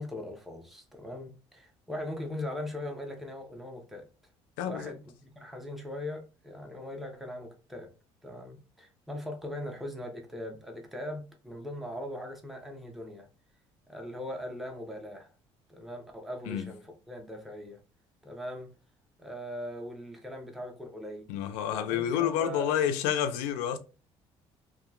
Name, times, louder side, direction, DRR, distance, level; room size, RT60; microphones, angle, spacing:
voice 1, 0.0-4.1 4.7-7.9 8.2-13.3 13.9-15.3 15.7-17.8 18.2-18.7 19.2-21.3 21.7-22.7, left 1 dB, ahead, 0.7 m, -40 dB
voice 2, 4.6-4.9 16.5-16.6 21.3-23.8, left 9 dB, 90° left, 0.4 m, -29 dB
2.8 x 2.3 x 2.3 m
supercardioid pair, 85°, 12 cm